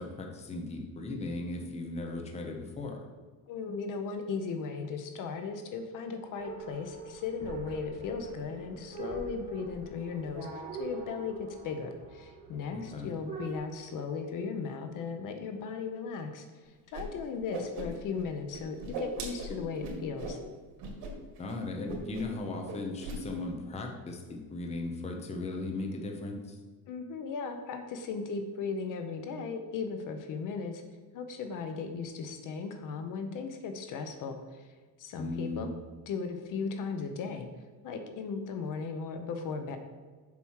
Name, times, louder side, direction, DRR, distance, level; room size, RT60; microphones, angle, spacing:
voice 1, 0.0-3.0 12.7-13.1 21.4-26.6 35.2-35.8, left 2 dB, 15° left, 2 dB, 0.8 m, -37 dB
voice 2, 3.5-20.4 26.9-30.8 31.1-34.7 35.0-35.7 36.1-37.5 37.8-39.8, left 5 dB, 55° left, 7 dB, 0.8 m, -37 dB
sound 1, 6.4-13.6, right 2 dB, 15° right, 1.9 m, -43 dB
Whoosh swoosh swish, 16.9-17.0 17.3-18.2 18.5-20.4 20.8-21.1 21.4-21.5 21.9-22.4 22.6-23.2, right 2 dB, 90° right, 2.1 m, -39 dB
7.1 x 5.9 x 4.7 m, 1.4 s
cardioid pair, 170°, 39 cm